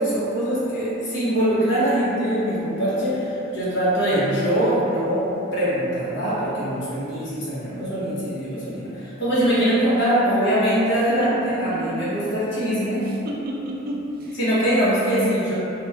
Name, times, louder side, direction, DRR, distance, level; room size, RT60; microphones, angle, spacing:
voice 1, 0.0-5.2 5.5-13.0 14.4-15.6, equal, 60° left, -10 dB, 1.0 m, -22 dB
voice 2, 10.9-12.0 13.0-14.4, right 1 dB, 45° right, -3 dB, 0.4 m, -32 dB
2.9 x 2.8 x 2.4 m, 3.0 s
head